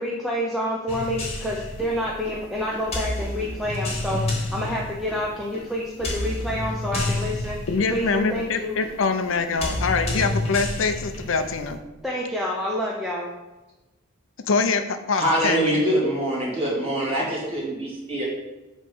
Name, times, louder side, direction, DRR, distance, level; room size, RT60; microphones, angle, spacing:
voice 1, 0.0-4.2 4.5-7.6 7.9-8.7 12.0-13.3, equal, ahead, -4 dB, 0.6 m, -28 dB
sound 1, 0.9-11.8, left 1 dB, 30° left, 1.3 m, -30 dB
voice 2, 7.7-11.8 14.4-15.7, left 4 dB, 70° left, 8 dB, 0.5 m, -24 dB
voice 3, 15.1-18.2, right 1 dB, 30° right, -5 dB, 2.3 m, -24 dB
7.6 x 3.1 x 5.5 m, 1.1 s
head